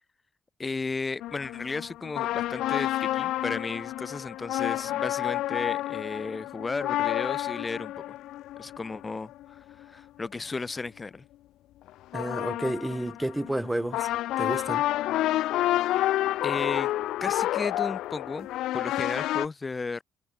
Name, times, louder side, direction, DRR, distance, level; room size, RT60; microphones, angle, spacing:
voice 1, 0.6-8.1 8.6-11.2 16.4-16.9 17.2-18.5 18.7-20.0, left 4 dB, 25° left, 4.2 m, -34 dB
sound 1, 1.2-9.8 11.9-19.5, left 15 dB, 90° left, 0.4 m, -29 dB
voice 2, 12.1-14.1 14.4-14.9, right 1 dB, 10° right, 2.2 m, -30 dB
cardioid pair, 90°, 0 cm